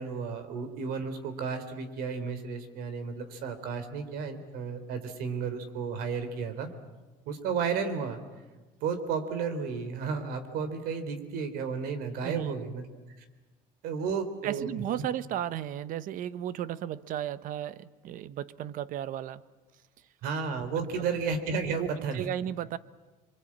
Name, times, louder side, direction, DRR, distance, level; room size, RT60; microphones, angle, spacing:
voice 1, 0.0-6.7 7.2-8.2 8.8-12.9 13.8-14.7 20.2-22.2, right 5 dB, 85° right, 9 dB, 3.5 m, -33 dB
voice 2, 12.2-12.6 14.4-19.4 20.8-21.1 21.8-22.8, right 11 dB, 60° right, 16 dB, 0.9 m, -34 dB
27.5 x 23.5 x 8.6 m, 1.2 s
cardioid pair, 145°, 15 cm